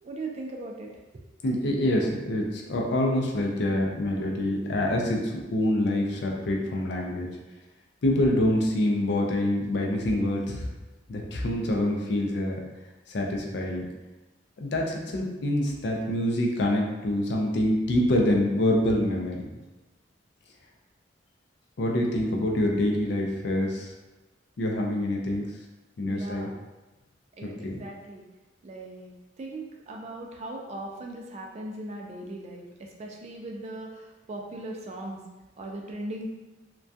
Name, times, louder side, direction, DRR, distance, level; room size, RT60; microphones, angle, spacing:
voice 1, 0.0-1.2 26.0-26.6 27.4-28.2 28.6-35.2 35.6-36.3, right 2 dB, 35° right, 0 dB, 0.3 m, -39 dB
voice 2, 1.4-7.3 8.0-10.7 11.1-12.6 13.1-13.8 14.6-19.4 21.8-23.9 24.6-25.5 26.0-26.5 27.4-27.8, left 1 dB, 60° left, 0 dB, 0.4 m, -26 dB
2.2 x 2.2 x 2.6 m, 1.1 s
head